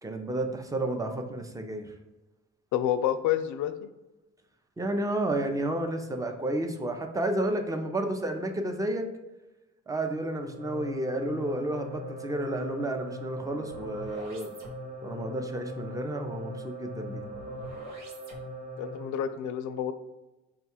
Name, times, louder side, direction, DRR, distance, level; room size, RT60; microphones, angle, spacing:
voice 1, 0.0-1.9 4.8-9.1 9.9-14.5 15.0-17.3, right 1 dB, 10° right, 5 dB, 0.5 m, -31 dB
voice 2, 2.7-3.9 18.8-19.9, left 10 dB, 75° left, 10 dB, 0.5 m, -29 dB
sound 1, 10.5-19.3, equal, 75° right, 1.1 m, -40 dB
4.6 x 2.3 x 4.3 m, 1.0 s
cardioid pair, 90°, 30 cm